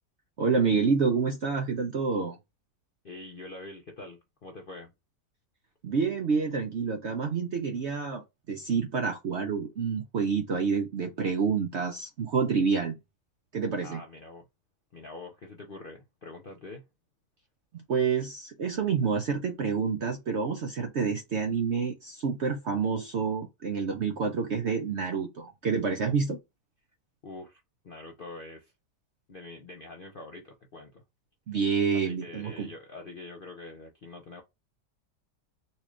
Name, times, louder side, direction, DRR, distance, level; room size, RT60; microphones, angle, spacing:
voice 1, 0.4-2.4 5.8-8.2 8.5-13.0 13.5-14.0 17.9-26.4 31.5-32.7, right 5 dB, 60° right, 0.7 m, -28 dB
voice 2, 3.0-4.9 13.8-14.5 14.9-16.9 27.2-28.7 29.3-31.0 31.9-34.4, left 2 dB, 55° left, 0.6 m, -45 dB
4.3 x 2.4 x 3.1 m
omnidirectional pair, 1.8 m